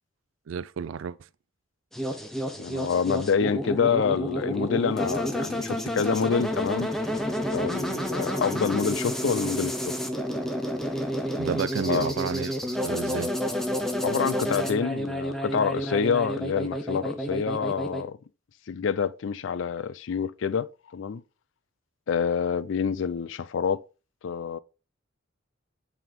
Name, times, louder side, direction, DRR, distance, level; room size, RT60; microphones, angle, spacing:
voice 1, 0.5-1.2 11.4-12.5 12.8-13.3, right 6 dB, 80° right, 0.4 m, -31 dB
sound 1, 1.9-18.0, equal, ahead, 0.7 m, -30 dB
voice 2, 2.6-6.9 7.5-10.0 11.8-12.1 14.0-18.2 18.7-21.2 22.1-23.8 24.2-24.6, left 6 dB, 70° left, 0.4 m, -27 dB
8.4 x 3.5 x 3.7 m
head